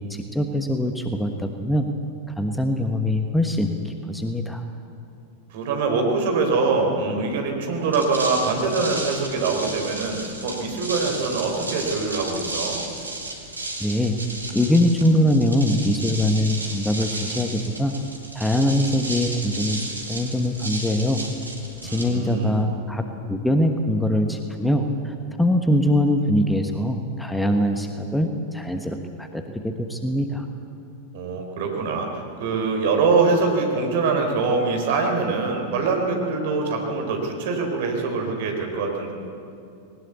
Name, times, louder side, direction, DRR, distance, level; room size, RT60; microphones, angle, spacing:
voice 1, 0.0-1.9 2.4-4.6 13.8-14.2 14.5-17.9 18.3-21.2 21.8-23.0 23.3-30.5, left 1 dB, 5° left, 6 dB, 1.3 m, -23 dB
voice 2, 5.5-12.8 21.8-22.6 31.1-39.1, right 4 dB, 55° right, 2 dB, 4.0 m, -24 dB
sound 1, 7.8-22.6, right 2 dB, 80° right, 2.9 m, -34 dB
20.0 x 19.0 x 8.3 m, 2.6 s
figure-of-eight pair, 90°, 0 cm